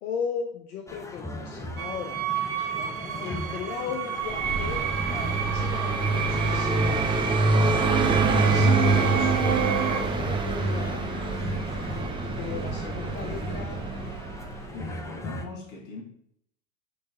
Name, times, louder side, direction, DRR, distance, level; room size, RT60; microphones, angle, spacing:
voice 1, 0.0-2.2 3.2-4.9 5.2-7.2 8.1-11.2 12.4-13.8, left 6 dB, 80° left, 0.9 m, -37 dB
sound 1, 0.9-15.4, left 1 dB, 5° left, 0.5 m, -39 dB
sound 2, 1.8-10.0, right 8 dB, 40° right, 1.1 m, -29 dB
Car passing by, 4.2-14.8, right 3 dB, 10° right, 0.9 m, -26 dB
voice 2, 14.7-16.0, left 3 dB, 45° left, 1.8 m, -40 dB
7.6 x 3.2 x 4.1 m
hypercardioid pair, 110°, 43 cm